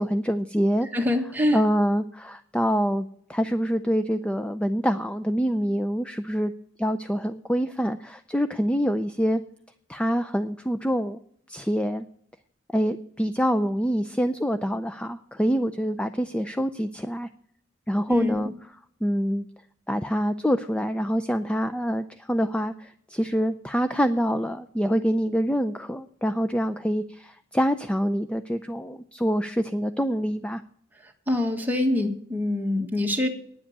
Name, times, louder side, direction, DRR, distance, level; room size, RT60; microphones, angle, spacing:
voice 1, 0.0-0.9 1.5-6.5 6.8-9.4 9.9-11.2 11.5-12.0 12.7-17.3 17.9-18.5 19.0-19.5 19.9-30.6, equal, 5° left, 9 dB, 0.4 m, -25 dB
voice 2, 0.9-1.6 18.1-18.4 31.3-33.3, left 1 dB, 10° right, 1 dB, 1.5 m, -24 dB
10.0 x 7.7 x 8.6 m, 0.66 s
head